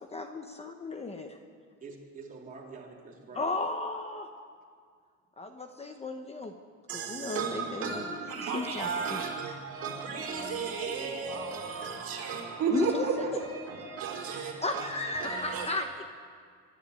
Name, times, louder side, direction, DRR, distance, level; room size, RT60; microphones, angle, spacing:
voice 1, 0.0-1.4 3.3-4.3 5.4-6.5 6.9-8.1 8.5-9.2 12.7-13.0 14.6-16.0, left 3 dB, 20° left, 1.0 m, -34 dB
voice 2, 1.8-3.5 10.1-11.7 13.2-13.3, right 4 dB, 25° right, 3.8 m, -46 dB
voice 3, 6.9-15.7, right 5 dB, 45° right, 5.1 m, -34 dB
24.5 x 11.5 x 9.8 m
cardioid pair, 155°, 32 cm